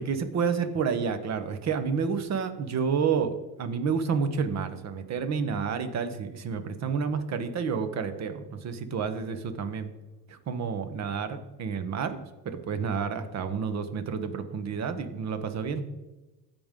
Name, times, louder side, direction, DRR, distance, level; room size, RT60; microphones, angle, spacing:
voice 1, 0.0-9.9 10.3-12.2 12.4-15.8, right 6 dB, 35° right, 10 dB, 0.9 m, -30 dB
15.5 x 5.3 x 3.7 m, 1.1 s
cardioid pair, 125°, 49 cm